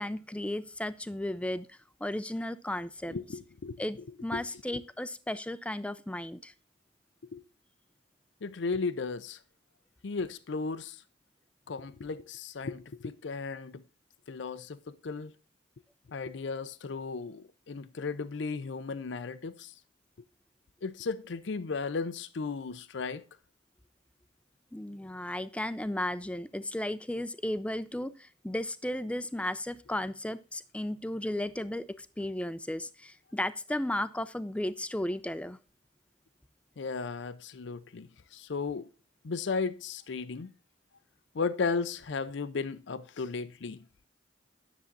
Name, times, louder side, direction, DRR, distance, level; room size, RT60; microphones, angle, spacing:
voice 1, 0.0-3.2 3.8-6.5 24.7-35.6, left 1 dB, 5° left, 0.4 m, -35 dB
voice 2, 3.1-3.8 4.3-4.5 4.7-4.8 7.3-7.4 8.4-9.4 10.0-11.0 11.7-13.8 14.3-15.3 16.1-19.7 20.8-23.2 36.8-38.9 39.2-40.5 41.3-43.8, left 4 dB, 65° left, 0.5 m, -35 dB
10.0 x 7.1 x 3.9 m
head